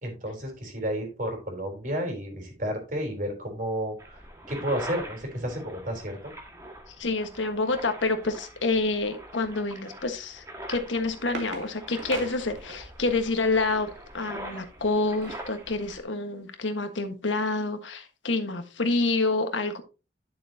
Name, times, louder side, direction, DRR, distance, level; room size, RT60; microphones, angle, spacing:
voice 1, 0.0-6.3, equal, 45° right, 3.6 m, -32 dB
sound 1, 4.0-16.0, right 1 dB, 15° right, 1.7 m, -43 dB
voice 2, 6.9-19.8, left 3 dB, 85° left, 1.4 m, -28 dB
sound 2, 10.6-13.1 14.7-15.6 16.0-16.1 16.4-16.6, right 3 dB, 80° right, 2.2 m, -40 dB
11.0 x 6.9 x 2.8 m
head